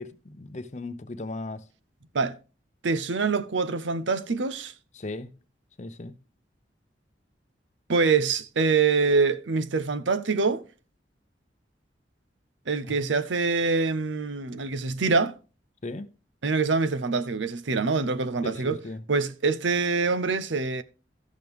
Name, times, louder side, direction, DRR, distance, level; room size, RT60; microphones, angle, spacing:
voice 1, 0.0-1.6 4.9-5.3 5.8-6.1 12.9-13.0 15.8-16.1 18.5-19.0, left 2 dB, 40° left, 0.7 m, -37 dB
voice 2, 2.8-4.7 7.9-10.6 12.7-15.3 16.4-18.8 19.1-20.8, right 4 dB, 85° right, 0.7 m, -25 dB
14.0 x 6.2 x 3.5 m
head